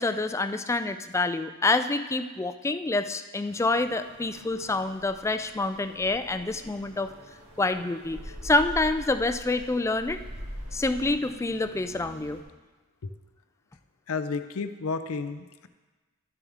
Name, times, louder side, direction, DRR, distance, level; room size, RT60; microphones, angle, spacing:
voice 1, 0.0-7.1 7.6-10.2 10.7-12.4, left 2 dB, 15° left, 10 dB, 0.3 m, -27 dB
sound 1, 3.4-12.4, equal, 85° right, 2.3 m, -43 dB
voice 2, 14.1-15.7, left 4 dB, 85° left, 10 dB, 0.5 m, -32 dB
12.0 x 7.1 x 3.5 m, 1.3 s
head